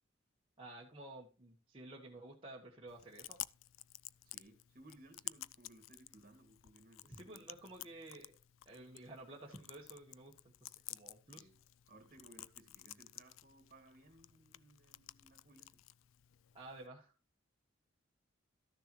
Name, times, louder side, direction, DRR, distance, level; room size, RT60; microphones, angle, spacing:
voice 1, 0.6-3.4 7.0-8.3 8.6-10.3 10.6-11.5 16.5-17.1, right 2 dB, 25° right, -3 dB, 1.4 m, -52 dB
Chewing mastication, 2.9-16.9, left 16 dB, 75° left, 0.4 m, -53 dB
voice 2, 4.2-7.9 11.4-11.5 11.9-15.8, right 1 dB, 45° right, 7 dB, 2.2 m, -62 dB
13.0 x 6.7 x 3.1 m, 0.34 s
head